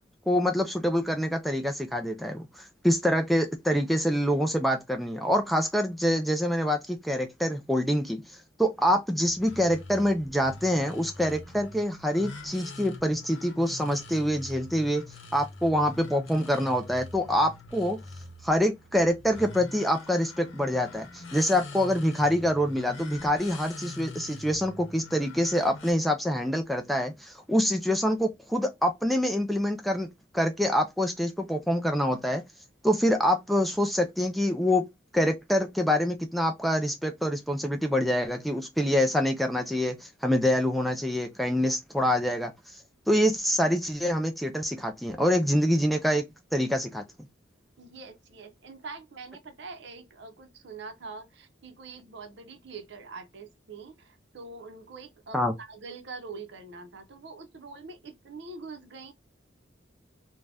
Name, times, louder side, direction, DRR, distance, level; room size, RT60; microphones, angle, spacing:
voice 1, 0.3-8.2 8.6-15.0 15.3-18.0 18.4-30.1 30.3-32.4 32.8-34.9 35.1-42.5 43.1-46.2 46.5-47.0 55.3-55.5, equal, ahead, 0.3 m, -26 dB
sound 1, 9.2-25.9, left 2 dB, 85° left, 0.7 m, -44 dB
voice 2, 47.8-59.1, right 4 dB, 65° right, 0.6 m, -44 dB
2.6 x 2.1 x 3.3 m
head